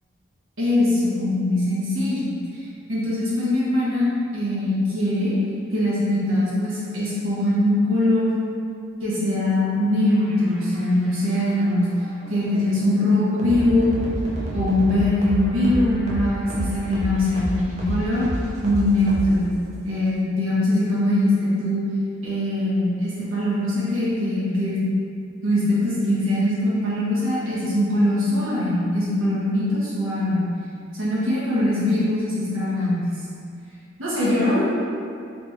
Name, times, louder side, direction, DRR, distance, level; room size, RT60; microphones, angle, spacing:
voice 1, 0.6-2.6 2.9-4.0 4.3-5.3 5.7-8.3 9.0-11.9 12.3-13.9 14.5-18.3 18.6-19.5 19.8-21.8 22.2-24.8 25.4-30.4 30.9-33.0 34.0-34.6, left 1 dB, 80° right, -9 dB, 1.2 m, -22 dB
sound 1, 10.0-19.7, equal, 35° right, 0.6 m, -31 dB
3.6 x 3.3 x 2.7 m, 2.4 s
head